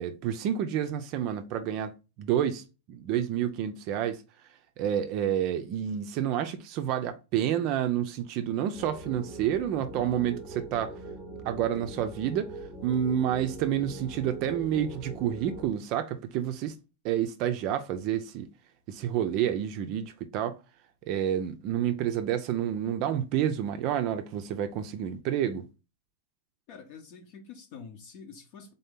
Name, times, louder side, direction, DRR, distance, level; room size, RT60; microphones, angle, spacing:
voice 1, 0.0-1.9 2.2-4.2 4.8-11.0 11.4-12.5 12.8-16.8 17.0-18.5 18.9-20.6 21.1-25.7, right 10 dB, 40° right, 0.4 m, -29 dB
sound 1, 8.7-15.7, right 2 dB, 5° left, 0.7 m, -42 dB
voice 2, 26.7-28.7, left 6 dB, 50° left, 0.8 m, -47 dB
3.7 x 2.8 x 3.5 m
supercardioid pair, 150°, 0 cm